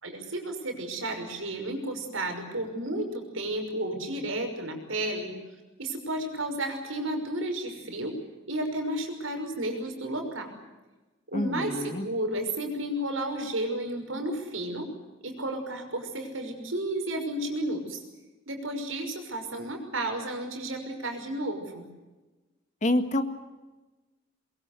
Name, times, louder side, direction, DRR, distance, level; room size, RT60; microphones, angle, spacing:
voice 1, 0.0-5.3 5.8-8.1 8.5-10.6 11.3-14.9 15.2-18.0 18.5-21.8, right 1 dB, 85° right, 5 dB, 5.9 m, -32 dB
voice 2, 11.3-12.1 22.8-23.2, left 1 dB, 40° left, 9 dB, 1.8 m, -27 dB
23.0 x 22.5 x 8.1 m, 1.2 s
head